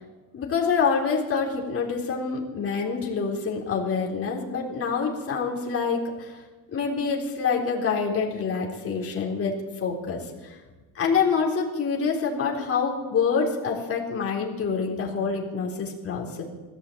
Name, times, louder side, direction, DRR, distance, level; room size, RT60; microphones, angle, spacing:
voice 1, 0.3-6.4 6.7-9.5 9.8-10.2 10.9-16.4, left 5 dB, 30° left, -2 dB, 4.1 m, -26 dB
20.5 x 15.0 x 8.8 m, 1.3 s
cardioid pair, 140°, 44 cm